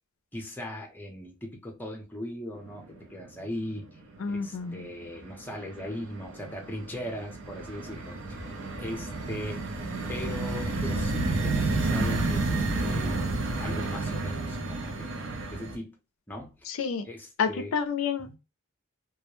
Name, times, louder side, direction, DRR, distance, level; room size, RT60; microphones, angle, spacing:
voice 1, 0.3-4.0 4.3-9.7 10.1-13.2 13.6-15.1 15.5-16.0 16.3-16.6 17.1-17.7 18.2-18.4, left 1 dB, 10° left, 0.6 m, -39 dB
sound 1, 2.7-3.2 3.5-4.3 4.6-15.8, right 2 dB, 60° right, 0.6 m, -31 dB
voice 2, 4.2-4.9 16.7-17.1 17.4-18.4, left 6 dB, 65° left, 0.4 m, -29 dB
2.2 x 2.1 x 2.9 m
head